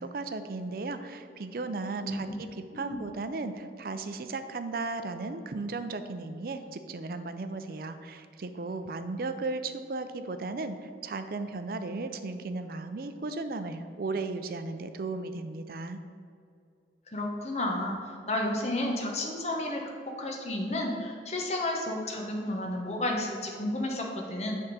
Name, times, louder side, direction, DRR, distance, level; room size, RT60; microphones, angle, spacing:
voice 1, 0.0-2.5 2.7-16.0, right 3 dB, 55° right, 9 dB, 0.5 m, -35 dB
voice 2, 17.1-18.0 18.3-19.8 20.2-24.6, left 1 dB, 35° left, 0 dB, 1.0 m, -31 dB
7.3 x 3.6 x 6.5 m, 2.4 s
head